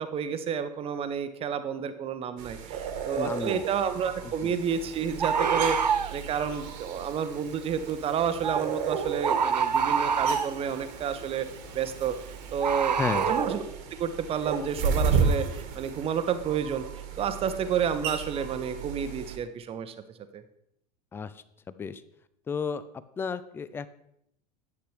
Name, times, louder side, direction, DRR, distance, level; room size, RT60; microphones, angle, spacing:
voice 1, 0.0-11.5 11.7-13.0 13.2-13.6 14.0-19.9 20.3-20.4, right 7 dB, 25° right, 10 dB, 0.8 m, -30 dB
sound 1, 2.4-19.4, right 5 dB, 50° right, 1.4 m, -33 dB
voice 2, 3.2-3.7 4.4-4.5 13.0-13.3 21.1-21.3 21.7-22.0 22.5-22.8 23.2-23.9, left 5 dB, 10° left, 15 dB, 0.4 m, -32 dB
Bird, 3.5-3.6 5.2-6.1 8.4-8.7 9.2-10.6 12.6-13.5, right 6 dB, 85° right, 0.4 m, -26 dB
10.0 x 8.0 x 3.4 m, 0.75 s
figure-of-eight pair, 80°, 21 cm